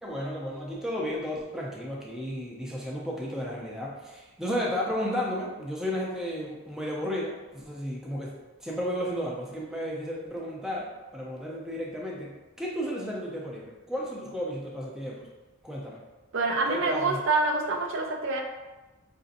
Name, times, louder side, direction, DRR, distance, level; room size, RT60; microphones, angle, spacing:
voice 1, 0.0-15.3 15.6-16.0 16.7-17.2, equal, ahead, -4 dB, 0.5 m, -33 dB
voice 2, 16.3-18.4, right 3 dB, 60° right, 2 dB, 0.5 m, -26 dB
4.9 x 2.6 x 2.5 m, 1.1 s
head